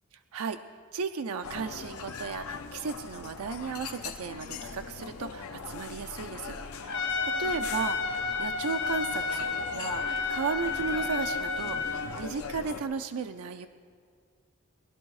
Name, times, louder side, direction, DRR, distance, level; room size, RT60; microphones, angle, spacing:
voice 1, 0.9-13.7, right 5 dB, 85° right, 7 dB, 0.5 m, -35 dB
sound 1, 1.4-12.8, left 5 dB, 85° left, 0.8 m, -40 dB
Trumpet, 6.9-12.1, left 4 dB, 55° left, 0.9 m, -31 dB
19.0 x 11.5 x 4.7 m, 2.2 s
head